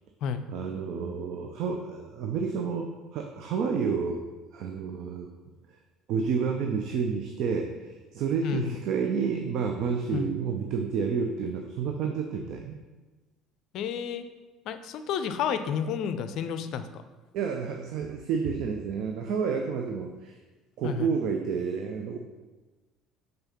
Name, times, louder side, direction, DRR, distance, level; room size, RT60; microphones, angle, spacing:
voice 1, 0.5-4.2 4.5-5.3 5.7-5.8 6.1-12.8 17.3-20.4 20.8-22.2, right 6 dB, 55° right, 4 dB, 0.5 m, -30 dB
voice 2, 8.4-8.8 10.1-10.3 13.7-14.2 14.7-17.0 20.8-21.1, left 7 dB, 55° left, 10 dB, 0.4 m, -31 dB
5.5 x 3.9 x 5.6 m, 1.2 s
figure-of-eight pair, 55°, 0 cm